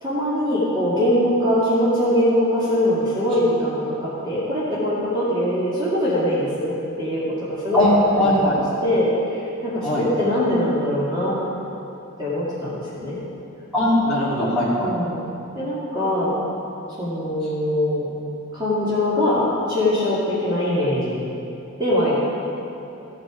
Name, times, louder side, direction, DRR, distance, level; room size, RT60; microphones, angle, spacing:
voice 1, 0.0-6.7 7.0-7.9 8.2-11.4 12.2-13.2 14.8-15.3 15.5-16.4 17.0-18.1 18.5-21.2 21.8-22.2, left 1 dB, 20° right, -10 dB, 2.1 m, -22 dB
voice 2, 7.7-8.6 9.8-10.0 13.7-14.9, left 1 dB, 5° left, -12 dB, 2.3 m, -19 dB
14.5 x 7.9 x 5.0 m, 2.8 s
head